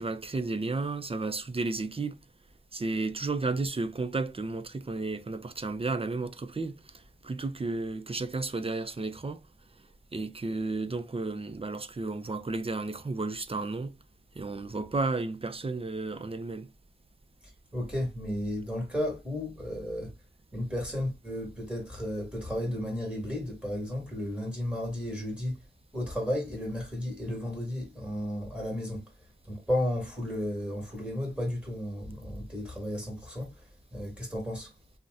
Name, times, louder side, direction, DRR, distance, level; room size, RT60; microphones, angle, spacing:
voice 1, 0.0-2.2 2.7-6.8 7.2-9.4 10.1-14.0 14.4-16.7, right 3 dB, 30° right, 0.4 m, -32 dB
voice 2, 17.7-20.1 20.5-25.6 25.9-29.1 29.5-33.5 33.9-34.7, left 1 dB, 5° right, 1.4 m, -33 dB
2.7 x 2.1 x 3.4 m
wide cardioid pair, 70°, 19 cm